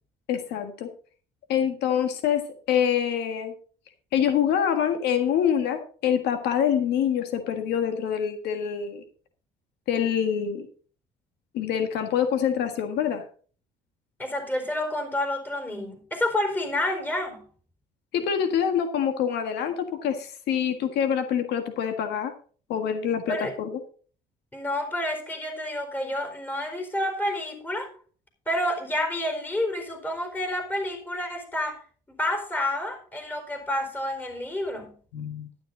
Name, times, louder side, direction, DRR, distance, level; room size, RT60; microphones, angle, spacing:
voice 1, 0.3-0.9 1.5-3.5 4.1-9.0 9.9-10.7 11.5-13.2 18.1-22.3 22.7-23.8 35.1-35.5, left 8 dB, 80° left, 7 dB, 1.6 m, -25 dB
voice 2, 14.2-17.4 23.3-23.5 24.5-27.9 28.5-31.8 32.2-35.0, left 1 dB, 10° left, 6 dB, 4.3 m, -29 dB
12.0 x 10.5 x 3.9 m, 0.41 s
cardioid pair, 110°, 17 cm